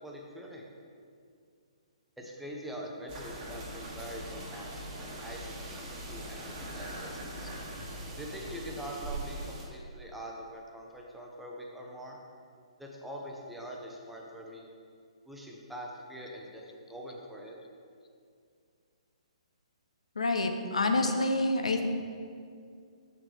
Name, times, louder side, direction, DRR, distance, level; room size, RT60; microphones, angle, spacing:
voice 1, 0.0-0.7 2.2-5.8 6.1-7.1 8.2-12.2 12.8-14.7 15.2-16.6 16.9-17.6, equal, 5° right, -2 dB, 0.7 m, -43 dB
sound 1, 3.1-9.6, right 1 dB, 25° right, 1.2 m, -41 dB
voice 2, 20.2-21.8, left 2 dB, 70° left, 5 dB, 0.6 m, -27 dB
6.5 x 5.8 x 3.3 m, 2.3 s
figure-of-eight pair, 125°, 3 cm